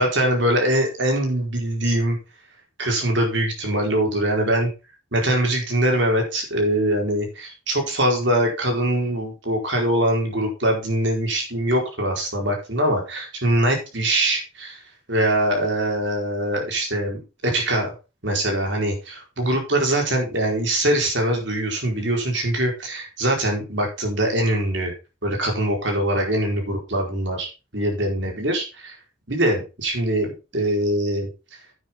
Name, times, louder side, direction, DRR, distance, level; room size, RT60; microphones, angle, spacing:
voice 1, 0.0-2.2 2.8-4.7 5.1-14.8 15.1-17.9 18.2-24.9 25.2-28.9 29.3-31.3, right 1 dB, 65° right, 2 dB, 4.5 m, -23 dB
10.0 x 9.5 x 3.7 m, 0.30 s
head